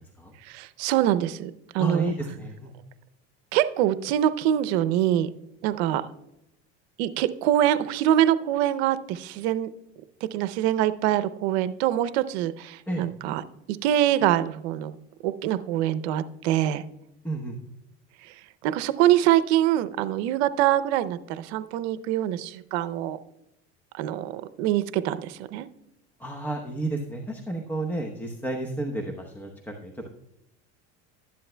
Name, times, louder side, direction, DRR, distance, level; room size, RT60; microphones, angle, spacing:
voice 1, 0.4-2.1 3.5-5.3 5.6-6.1 7.0-9.7 10.3-13.4 13.7-14.9 15.2-16.8 18.2-18.3 18.6-23.2 24.0-25.7, right 12 dB, 80° right, 13 dB, 0.6 m, -24 dB
voice 2, 1.8-2.7 12.9-13.0 17.2-17.6 26.2-29.5 29.8-30.1, right 2 dB, 5° left, 1 dB, 0.9 m, -31 dB
12.5 x 10.5 x 2.2 m, 0.84 s
supercardioid pair, 120°, 32 cm